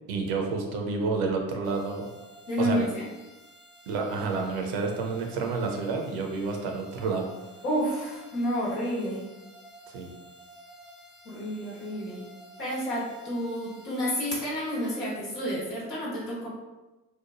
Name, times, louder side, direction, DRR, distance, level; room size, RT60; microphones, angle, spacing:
voice 1, 0.1-2.1 2.6-2.9 3.9-7.3 9.9-10.1, right 4 dB, 70° right, 2 dB, 0.7 m, -29 dB
sound 1, 1.6-15.2, right 1 dB, 45° left, 0.7 m, -52 dB
voice 2, 2.5-3.0 7.6-9.2 11.2-12.2 12.6-16.5, equal, 85° left, -6 dB, 1.0 m, -30 dB
2.9 x 2.1 x 2.8 m, 1.1 s
hypercardioid pair, 45°, 47 cm